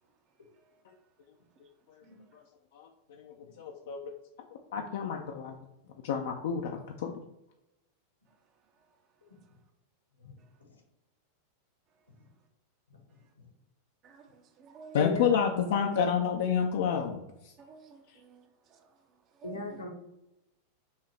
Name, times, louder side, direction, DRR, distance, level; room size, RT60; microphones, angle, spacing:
voice 1, 2.7-4.1 4.7-5.5 6.0-7.2 14.9-17.5, left 7 dB, 55° left, 0.4 m, -30 dB
voice 2, 10.1-10.7 14.9-16.2 19.4-19.9, left 2 dB, 75° left, 1.1 m, -39 dB
voice 3, 14.0-15.1 17.6-18.4 18.7-18.8 19.4-19.8, right 5 dB, 35° right, 0.6 m, -52 dB
5.6 x 2.8 x 3.2 m
figure-of-eight pair, 90°, 0 cm